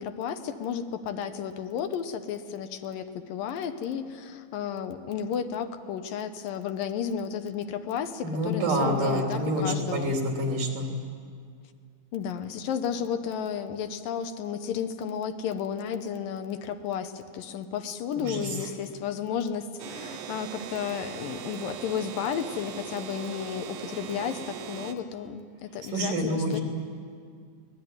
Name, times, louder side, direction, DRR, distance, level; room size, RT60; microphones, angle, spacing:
voice 1, 0.0-10.2 12.1-26.6, left 8 dB, 75° left, 8 dB, 2.6 m, -33 dB
voice 2, 8.2-10.9 18.2-18.6 25.8-26.6, equal, 65° right, 1 dB, 4.9 m, -27 dB
sound 1, 19.8-24.9, right 9 dB, 85° right, 3.0 m, -39 dB
23.0 x 19.0 x 9.6 m, 2.1 s
omnidirectional pair, 4.1 m